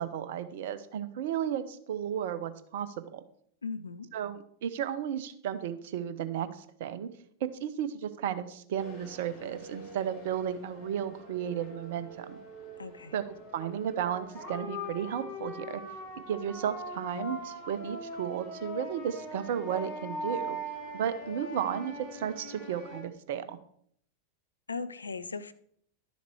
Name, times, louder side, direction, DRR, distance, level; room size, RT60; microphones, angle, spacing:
voice 1, 0.0-3.2 4.1-7.1 7.4-12.4 13.1-15.8 16.3-20.6 20.9-23.6, right 9 dB, 55° right, 12 dB, 0.9 m, -34 dB
voice 2, 3.6-4.1 12.8-13.2 24.7-25.5, left 4 dB, 75° left, 13 dB, 0.6 m, -38 dB
sound 1, 8.8-23.0, equal, 40° left, 5.0 m, -42 dB
12.0 x 7.0 x 4.6 m, 0.64 s
figure-of-eight pair, 90°, 0 cm